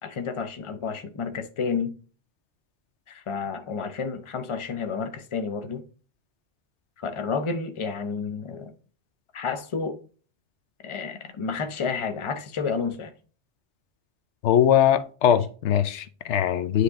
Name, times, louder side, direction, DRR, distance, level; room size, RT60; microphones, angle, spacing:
voice 1, 0.0-1.9 3.1-5.8 7.0-8.7 9.3-10.0 10.8-13.1, left 5 dB, 35° left, 0.6 m, -30 dB
voice 2, 14.4-16.8, left 10 dB, 85° left, 0.9 m, -21 dB
9.7 x 3.3 x 3.5 m
omnidirectional pair, 1.1 m